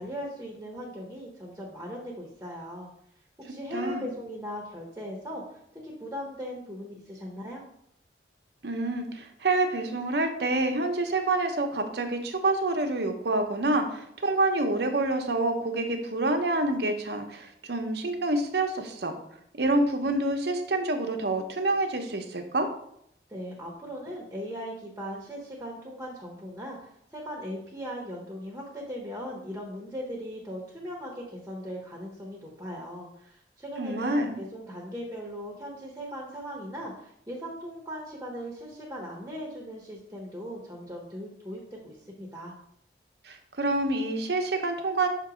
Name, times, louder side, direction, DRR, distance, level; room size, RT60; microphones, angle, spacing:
voice 1, 0.0-2.9 3.4-7.6 23.3-42.5, equal, 15° right, -2 dB, 0.9 m, -39 dB
voice 2, 3.7-4.1 8.6-19.1 19.6-22.7 33.8-34.4 43.3-45.1, right 2 dB, 65° right, 5 dB, 0.8 m, -27 dB
6.5 x 2.9 x 4.9 m, 0.73 s
head